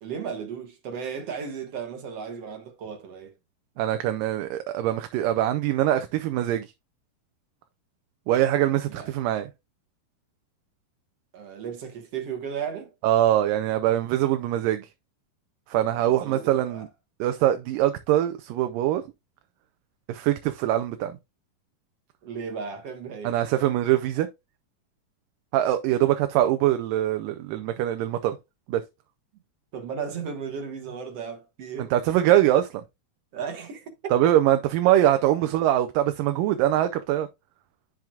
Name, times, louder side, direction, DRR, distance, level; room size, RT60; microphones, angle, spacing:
voice 1, 0.0-3.3 8.9-9.1 11.3-12.9 16.2-16.9 22.2-23.4 29.7-31.9 33.3-34.3 35.4-35.5, right 6 dB, 55° right, 2.1 m, -35 dB
voice 2, 3.8-6.7 8.3-9.5 13.0-14.9 15.7-16.9 17.2-19.0 20.1-21.2 23.2-24.3 25.5-28.4 28.7-28.8 31.8-32.8 34.1-37.3, right 12 dB, 85° right, 2.3 m, -23 dB
10.5 x 6.0 x 2.4 m
omnidirectional pair, 3.9 m